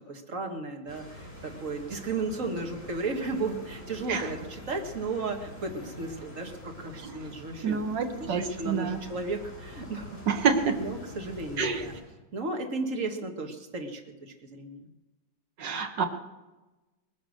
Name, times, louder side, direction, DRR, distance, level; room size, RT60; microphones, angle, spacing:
voice 1, 0.1-7.9 8.2-10.2 10.8-11.9 12.3-14.9 15.6-16.0, right 3 dB, 40° right, 4 dB, 1.9 m, -34 dB
sound 1, 0.9-12.0, left 1 dB, 20° left, 4.4 m, -46 dB
voice 2, 7.6-9.0 10.3-10.8 11.6-11.9 15.6-16.0, right 5 dB, 65° right, 6 dB, 1.9 m, -27 dB
20.0 x 10.5 x 6.5 m, 1.1 s
omnidirectional pair, 2.2 m